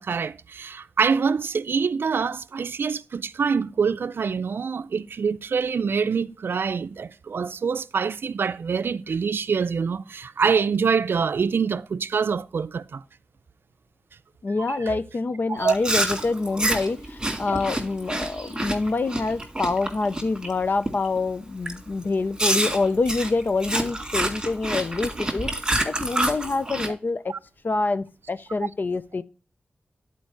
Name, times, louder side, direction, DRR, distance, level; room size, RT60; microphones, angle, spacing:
voice 1, 0.0-13.0 14.7-15.0 15.5-15.8 27.3-27.4, right 5 dB, 75° right, 0.4 m, -25 dB
voice 2, 14.4-25.5 25.8-27.4 27.6-29.2, left 3 dB, 55° left, 0.6 m, -26 dB
Chewing mastication, 15.6-20.5 20.9-21.2 21.7-21.8 22.4-26.9, right 1 dB, 20° right, 2.2 m, -27 dB
10.5 x 4.6 x 4.6 m
wide cardioid pair, 65°, 4 cm